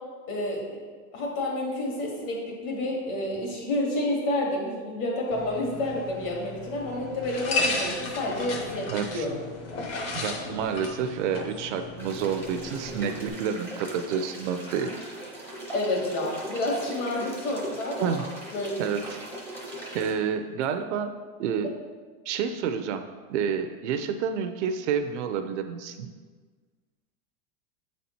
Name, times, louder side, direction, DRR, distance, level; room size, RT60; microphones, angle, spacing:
voice 1, 0.3-0.8 1.1-9.4 15.7-18.2 18.5-18.9, left 1 dB, 55° left, -2 dB, 2.2 m, -29 dB
sound 1, 5.3-13.3, left 3 dB, 30° left, 0.8 m, -34 dB
voice 2, 8.9-9.3 10.1-14.9 18.0-18.2 18.8-19.2 19.9-21.1 21.4-21.7 22.3-26.1, right 7 dB, 55° right, 8 dB, 0.5 m, -29 dB
sound 2, 12.0-20.1, right 1 dB, 5° left, 0.6 m, -39 dB
7.8 x 4.2 x 4.3 m, 1.5 s
supercardioid pair, 170°, 44 cm